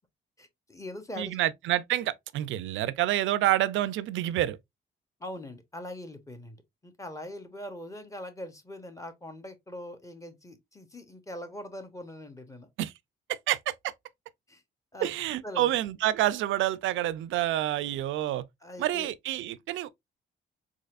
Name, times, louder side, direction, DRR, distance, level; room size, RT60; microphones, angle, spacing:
voice 1, 0.4-1.4 5.2-12.7 14.5-14.6 14.9-15.1 15.4-15.8 18.6-19.1, left 1 dB, 15° left, 1.0 m, -42 dB
voice 2, 1.2-4.6 12.8-12.9 13.3-13.9 15.0-18.5 18.8-19.9, right 14 dB, 80° right, 0.4 m, -28 dB
4.1 x 2.9 x 2.4 m
cardioid pair, 90°, 20 cm